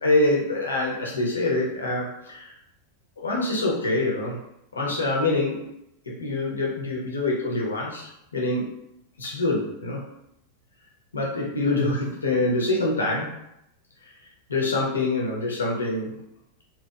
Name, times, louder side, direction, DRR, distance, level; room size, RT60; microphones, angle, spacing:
voice 1, 0.0-2.5 3.2-4.4 4.7-5.7 6.2-8.7 9.2-10.0 11.1-13.4 14.5-16.2, left 2 dB, 75° left, -2 dB, 0.6 m, -25 dB
2.8 x 2.2 x 2.2 m, 0.79 s
figure-of-eight pair, 90°, 0 cm